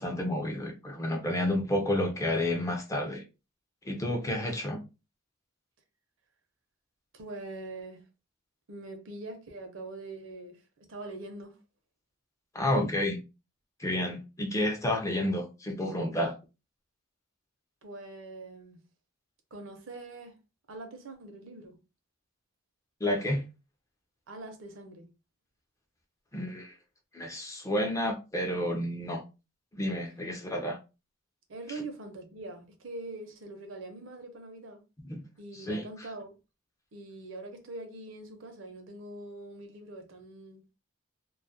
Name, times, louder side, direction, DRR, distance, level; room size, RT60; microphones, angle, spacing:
voice 1, 0.0-3.2 3.9-4.8 12.5-13.2 13.8-16.4 23.0-23.4 26.3-26.7 27.1-29.2 29.7-30.8 35.0-35.2 35.5-35.9, left 1 dB, 15° left, 0.3 m, -30 dB
voice 2, 7.1-8.0 8.7-11.6 17.8-18.8 19.5-20.4 20.7-21.8 24.3-25.1 31.5-34.8 35.4-36.4 36.9-40.6, right 2 dB, 75° right, 0.6 m, -43 dB
2.3 x 2.1 x 2.6 m
head